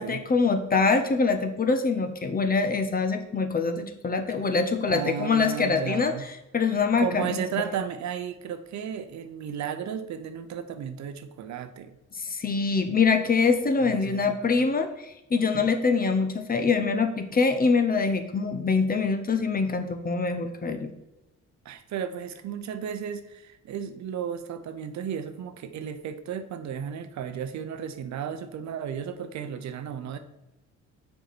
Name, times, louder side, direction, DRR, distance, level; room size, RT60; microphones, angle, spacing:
voice 1, 0.0-6.1 6.5-7.4 12.2-20.9, left 4 dB, 30° left, 7 dB, 0.8 m, -24 dB
voice 2, 4.9-6.2 6.7-12.0 13.8-14.6 15.5-15.7 21.6-30.2, right 8 dB, 65° right, 10 dB, 0.7 m, -34 dB
6.6 x 4.7 x 4.1 m, 0.96 s
cardioid pair, 90°, 30 cm